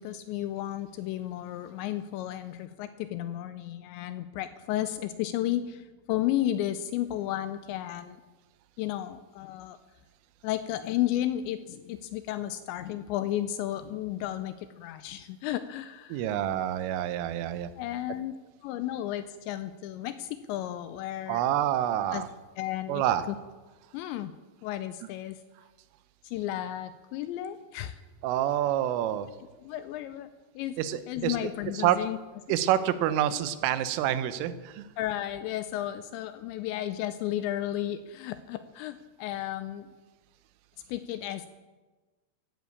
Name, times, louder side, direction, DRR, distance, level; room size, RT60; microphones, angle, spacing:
voice 1, 0.0-8.2 8.8-9.8 10.4-16.3 17.8-18.4 18.6-21.4 22.1-22.2 22.6-23.4 23.9-24.3 24.6-25.4 26.2-28.0 29.6-30.8 31.1-32.2 35.0-39.9 40.9-41.5, left 13 dB, 85° left, 11 dB, 2.6 m, -33 dB
voice 2, 16.1-17.7 21.3-22.3 22.9-23.2 28.2-29.3 30.8-31.4 31.7-32.0 32.5-34.9, right 12 dB, 90° right, 13 dB, 3.4 m, -27 dB
14.5 x 9.2 x 8.5 m, 1.3 s
omnidirectional pair, 5.6 m